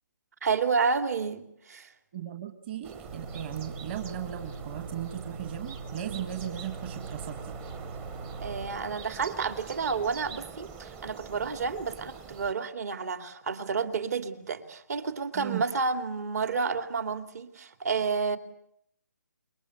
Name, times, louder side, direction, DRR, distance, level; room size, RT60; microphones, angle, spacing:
voice 1, 0.4-1.9 8.4-18.4, right 5 dB, 55° right, 9 dB, 2.7 m, -30 dB
voice 2, 2.1-7.5 15.4-15.6, right 10 dB, 35° right, 7 dB, 1.8 m, -37 dB
sound 1, 2.8-12.5, right 6 dB, 15° right, 1.0 m, -44 dB
sound 2, 3.0-8.7, right 3 dB, 75° right, 3.7 m, -42 dB
27.5 x 22.0 x 8.1 m, 0.72 s
hypercardioid pair, 155°, 10 cm